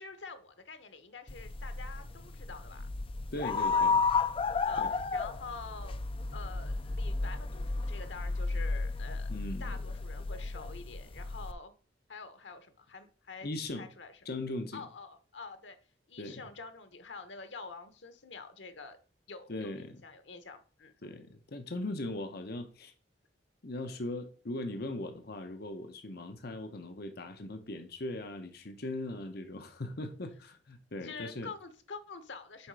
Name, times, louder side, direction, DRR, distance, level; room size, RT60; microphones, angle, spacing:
voice 1, 0.0-2.9 3.4-3.9 4.6-6.0 6.3-9.3 9.6-11.7 12.1-14.1 14.7-15.8 16.1-19.0 19.3-20.9 31.0-32.7, left 4 dB, 85° left, 1.1 m, -47 dB
sound 1, 1.3-11.5, left 4 dB, 30° left, 0.5 m, -33 dB
voice 2, 3.3-4.0 4.8-4.9 9.3-9.8 13.4-13.9 14.2-14.8 16.2-16.5 19.5-20.0 21.0-22.9 23.6-31.5, left 2 dB, 60° left, 0.9 m, -39 dB
7.2 x 4.9 x 4.8 m
head